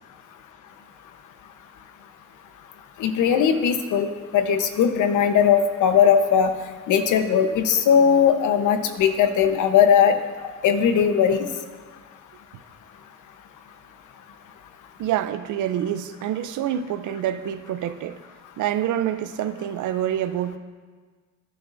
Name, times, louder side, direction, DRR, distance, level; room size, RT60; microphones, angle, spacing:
voice 1, 3.0-6.5 6.9-10.1 10.6-11.5, left 7 dB, 80° left, 7 dB, 1.1 m, -19 dB
voice 2, 15.0-18.2 18.6-20.6, right 11 dB, 85° right, 11 dB, 0.7 m, -26 dB
19.5 x 10.5 x 2.7 m, 1.5 s
cardioid pair, 90°, 30 cm